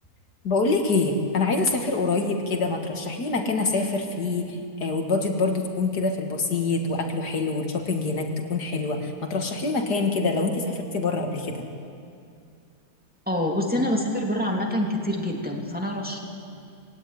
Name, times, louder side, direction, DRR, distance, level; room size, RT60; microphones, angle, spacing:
voice 1, 0.4-11.7, left 3 dB, 85° left, 3 dB, 2.6 m, -25 dB
voice 2, 13.3-16.2, left 1 dB, 5° right, -1 dB, 2.8 m, -26 dB
22.0 x 17.0 x 9.6 m, 2.4 s
omnidirectional pair, 1.7 m